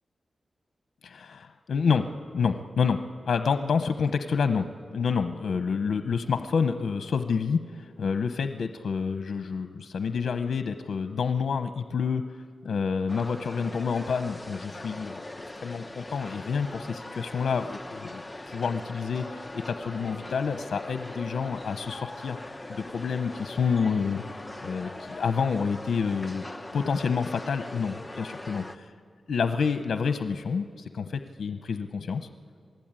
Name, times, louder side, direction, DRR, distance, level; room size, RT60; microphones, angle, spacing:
voice 1, 1.0-2.1 2.3-12.2 12.6-15.2 15.6-22.4 22.7-26.5 26.7-28.9 29.3-32.3, left 5 dB, 80° left, 8 dB, 0.8 m, -28 dB
sound 1, 13.1-28.8, left 2 dB, 15° left, 0.9 m, -41 dB
27.5 x 19.0 x 9.0 m, 2.1 s
wide cardioid pair, 105°, 0 cm